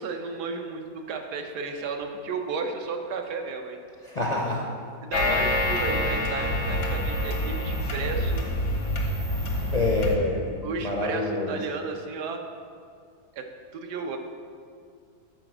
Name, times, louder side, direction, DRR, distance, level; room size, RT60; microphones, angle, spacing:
voice 1, 0.0-3.8 5.0-8.5 10.6-12.4 13.3-14.2, right 4 dB, 85° right, 4 dB, 1.3 m, -33 dB
voice 2, 4.0-4.7 9.7-10.5 10.8-11.6, left 2 dB, 50° left, -2 dB, 0.4 m, -26 dB
sound 1, 5.1-10.2, left 1 dB, 85° left, 1.7 m, -26 dB
7.6 x 4.8 x 6.0 m, 2.2 s
omnidirectional pair, 1.7 m